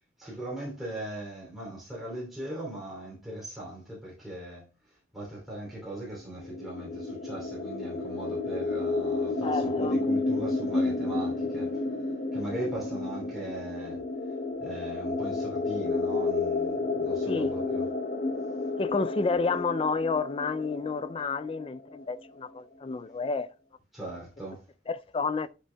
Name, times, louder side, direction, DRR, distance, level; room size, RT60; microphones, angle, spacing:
voice 1, 0.2-11.8 12.3-14.1 14.6-17.9 23.9-24.7, right 1 dB, ahead, 2.9 m, -39 dB
sound 1, 6.3-22.0, left 3 dB, 45° left, 0.8 m, -31 dB
voice 2, 9.4-10.0 17.3-17.5 18.8-23.5 24.9-25.5, left 4 dB, 30° left, 0.3 m, -30 dB
11.0 x 6.1 x 2.2 m
head